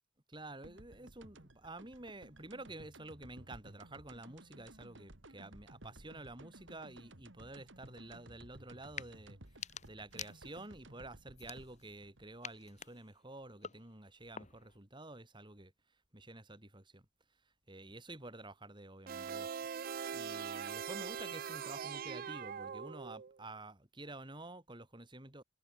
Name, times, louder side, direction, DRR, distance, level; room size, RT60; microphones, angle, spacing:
voice 1, 0.3-9.4 9.9-15.7 16.1-17.0 17.7-19.5 20.1-25.4, right 2 dB, 25° right, 3.0 m, -50 dB
sound 1, 0.6-13.4, right 1 dB, 60° right, 2.9 m, -57 dB
sound 2, 8.8-9.1 9.5-10.8 11.3-12.0 12.4-14.8, left 7 dB, 35° left, 4.3 m, -49 dB
sound 3, 19.1-23.4, right 7 dB, 45° right, 0.4 m, -42 dB
head